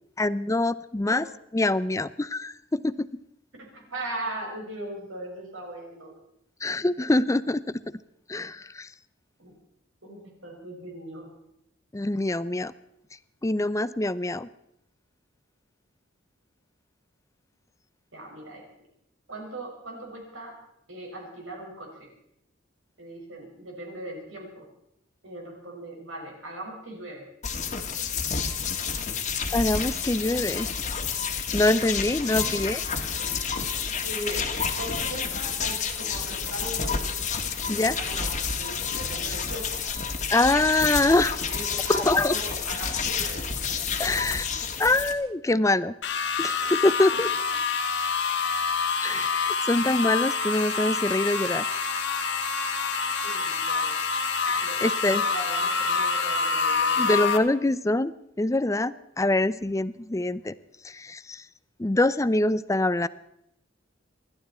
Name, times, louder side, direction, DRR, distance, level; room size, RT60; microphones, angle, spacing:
voice 1, 0.2-1.2 1.5-3.1 6.6-7.8 8.3-8.9 11.9-12.7 13.4-14.5 29.5-30.7 31.5-32.8 37.7-38.0 40.3-41.4 41.9-42.3 44.0-44.5 44.8-45.9 46.4-47.3 49.0-51.7 54.5-55.2 57.0-60.5 60.8-61.4 61.8-63.1, left 2 dB, 15° left, 16 dB, 0.5 m, -24 dB
voice 2, 3.7-6.1 9.4-9.5 10.0-11.3 18.1-18.6 19.3-20.5 20.9-22.1 23.0-24.7 25.2-27.2 32.4-32.6 33.2-33.7 34.0-37.2 37.7-39.8 41.4-43.5 47.1-47.2 53.2-53.9 54.6-57.2, right 1 dB, 85° right, 0 dB, 5.7 m, -39 dB
sound 1, 27.4-45.1, left 6 dB, 40° left, 1.7 m, -30 dB
sound 2, 46.0-57.4, left 5 dB, 65° left, 1.7 m, -27 dB
28.0 x 12.0 x 4.3 m, 0.79 s
head